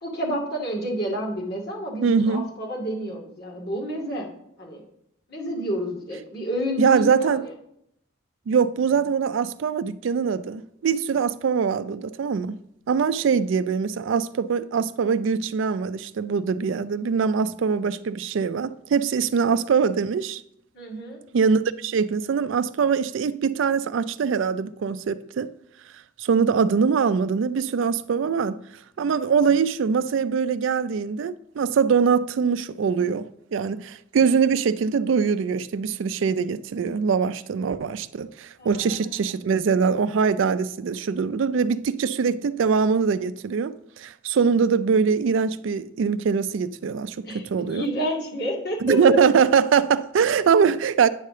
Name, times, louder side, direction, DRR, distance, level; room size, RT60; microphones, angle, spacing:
voice 1, 0.0-4.3 4.6-4.8 5.3-7.5 13.2-13.3 20.7-21.2 38.6-39.1 47.2-47.4 47.7-49.2, equal, 50° left, 2.0 m, -29 dB
voice 2, 2.0-2.5 6.8-7.4 8.5-12.6 12.9-20.4 21.3-25.5 26.2-28.6 29.0-47.9 48.8-51.1, right 6 dB, 70° right, 0.3 m, -23 dB
9.2 x 3.3 x 6.6 m
head